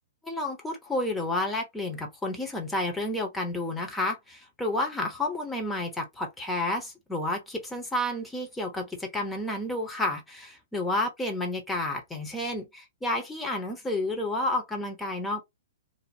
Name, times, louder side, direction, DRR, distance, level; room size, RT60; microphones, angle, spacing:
voice 1, 0.2-15.4, left 1 dB, 10° left, 0.9 m, -30 dB
2.7 x 2.0 x 3.2 m
figure-of-eight pair, 120°, 0 cm